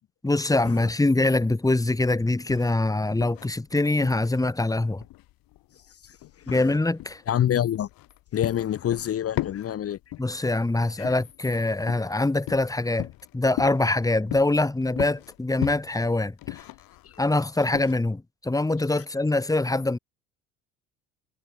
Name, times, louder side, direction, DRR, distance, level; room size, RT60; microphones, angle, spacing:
voice 1, 0.2-5.0 6.5-7.2 10.2-13.1 13.3-16.6 17.2-20.0, left 2 dB, 10° left, 1.7 m, -24 dB
sound 1, 0.9-17.9, left 17 dB, 60° left, 4.1 m, -38 dB
voice 2, 6.5-6.8 7.3-7.9 8.3-10.0 11.0-11.1 17.0-17.2 18.9-19.0, left 10 dB, 35° left, 1.0 m, -27 dB
hypercardioid pair, 65°, 40 cm